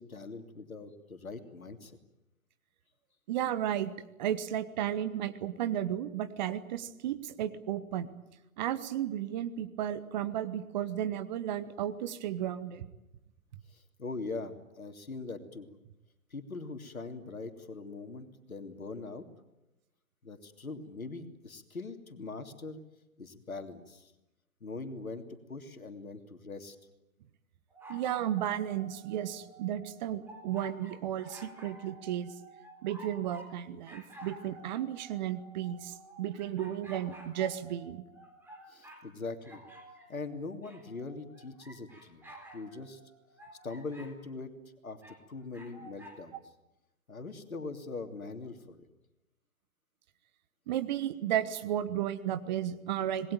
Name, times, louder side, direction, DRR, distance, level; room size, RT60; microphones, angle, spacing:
voice 1, 0.0-2.0 13.7-15.7 16.3-19.3 20.2-22.8 23.2-24.1 24.6-25.2 25.5-26.8 38.7-39.6 40.1-42.2 42.5-43.0 43.6-44.5 44.8-46.4 47.1-48.8, left 3 dB, 75° left, 7 dB, 3.1 m, -42 dB
voice 2, 3.3-3.9 4.2-8.1 8.6-12.9 27.9-32.3 32.8-38.0 50.7-53.3, right 11 dB, 30° right, 12 dB, 1.3 m, -33 dB
sound 1, 27.7-33.5 33.8-39.1 39.4-44.1 45.0-46.2, equal, 5° right, 4.1 m, -52 dB
27.0 x 20.5 x 9.2 m, 0.97 s
figure-of-eight pair, 125°, 42 cm